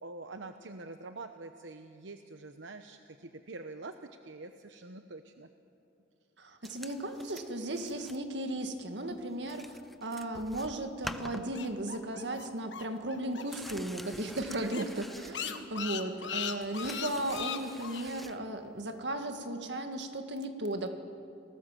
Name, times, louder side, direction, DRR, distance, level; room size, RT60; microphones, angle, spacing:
voice 1, 0.0-5.5 14.6-15.0 15.3-15.7, right 3 dB, 85° right, 7 dB, 0.9 m, -45 dB
voice 2, 6.4-14.8 15.2-20.9, right 1 dB, 70° right, 6 dB, 2.0 m, -36 dB
sound 1, 6.6-8.3 8.6-8.8 9.2-9.3 9.5-12.1 12.4-12.5 12.8-15.9 16.2-18.4 19.4-19.5, equal, ahead, 0.7 m, -47 dB
sound 2, 11.3-13.7 14.0-14.1 14.4-14.5 14.7-18.0, left 8 dB, 75° left, 1.4 m, -38 dB
29.5 x 19.0 x 7.6 m, 2.6 s
head